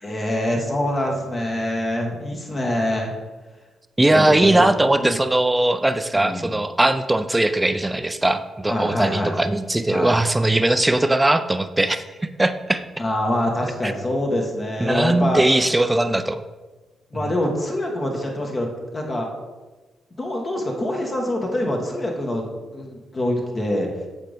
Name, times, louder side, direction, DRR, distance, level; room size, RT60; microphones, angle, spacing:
voice 1, 0.0-3.1 4.0-5.2 6.1-6.6 8.7-9.3 9.9-10.1 13.0-15.4 17.1-18.7 18.9-19.3 20.2-22.4 22.7-23.9, left 1 dB, 40° left, 1 dB, 1.4 m, -25 dB
voice 2, 4.0-12.0 12.4-12.8 13.8-13.9 14.8-16.4, right 1 dB, 15° right, 10 dB, 0.5 m, -19 dB
7.5 x 4.0 x 3.5 m, 1.2 s
supercardioid pair, 50°, 0 cm